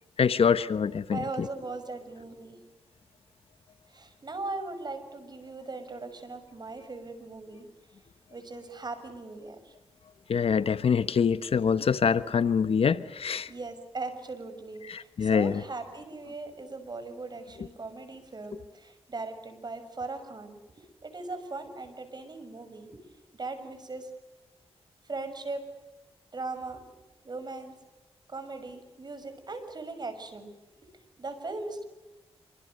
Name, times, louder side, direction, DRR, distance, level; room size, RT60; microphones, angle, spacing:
voice 1, 0.2-1.5 10.3-13.5 14.9-15.6, left 6 dB, 65° left, 13 dB, 1.1 m, -25 dB
voice 2, 1.1-2.6 3.9-7.7 8.3-9.7 13.5-23.0 23.3-24.1 25.0-25.7 26.3-26.9 27.2-27.7 28.3-30.5 30.8-31.8, right 3 dB, 40° right, 9 dB, 6.4 m, -39 dB
27.5 x 25.5 x 6.7 m, 1.1 s
cardioid pair, 80°, 11 cm